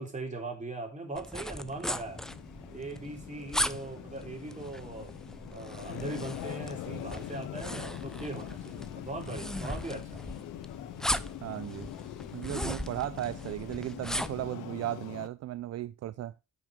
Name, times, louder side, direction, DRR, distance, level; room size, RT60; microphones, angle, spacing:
voice 1, 0.0-2.2 2.7-5.1 5.5-10.1, right 2 dB, 25° right, 3.6 m, -40 dB
sound 1, 1.2-14.5, equal, ahead, 0.5 m, -38 dB
sound 2, 2.0-15.3, left 15 dB, 90° left, 0.7 m, -43 dB
voice 2, 11.4-11.9 12.3-16.3, right 14 dB, 60° right, 0.5 m, -36 dB
8.8 x 6.2 x 5.2 m
cardioid pair, 90°, 30 cm